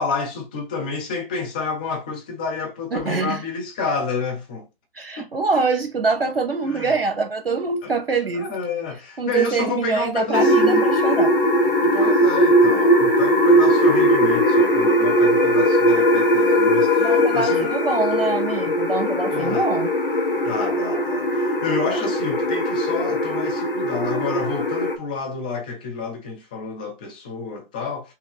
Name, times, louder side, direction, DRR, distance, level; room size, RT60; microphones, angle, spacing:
voice 1, 0.0-4.7 5.2-5.6 6.7-7.0 7.8-7.9 8.3-10.9 11.8-17.7 19.3-19.7 20.4-28.1, left 4 dB, 10° left, 0.3 m, -29 dB
voice 2, 2.9-3.4 4.9-8.5 9.2-11.4 17.0-19.9, right 4 dB, 85° right, 0.8 m, -24 dB
sound 1, 10.3-25.0, equal, 65° left, 1.2 m, -19 dB
3.7 x 2.7 x 3.5 m
figure-of-eight pair, 125°, 29 cm